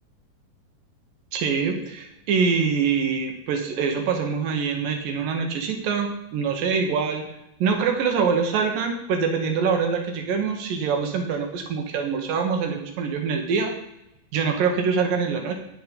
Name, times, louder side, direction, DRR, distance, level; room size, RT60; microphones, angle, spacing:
voice 1, 1.3-7.2 7.6-13.7 14.3-15.6, right 5 dB, 70° right, 4 dB, 2.6 m, -24 dB
9.3 x 7.7 x 5.2 m, 0.85 s
omnidirectional pair, 4.5 m